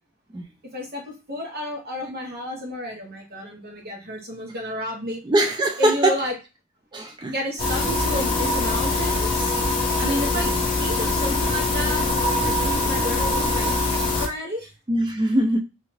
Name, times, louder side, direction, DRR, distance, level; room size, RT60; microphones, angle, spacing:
voice 1, 0.7-5.2 5.8-6.3 7.3-9.6 9.9-10.5 10.8-12.0 12.4-13.8 14.1-14.7, equal, 45° right, 1.0 m, -31 dB
voice 2, 5.3-6.1 6.9-7.3 14.9-15.6, right 1 dB, 20° right, 0.4 m, -21 dB
sound 1, 7.6-14.3, left 2 dB, 25° left, 0.7 m, -23 dB
2.7 x 2.4 x 3.1 m
head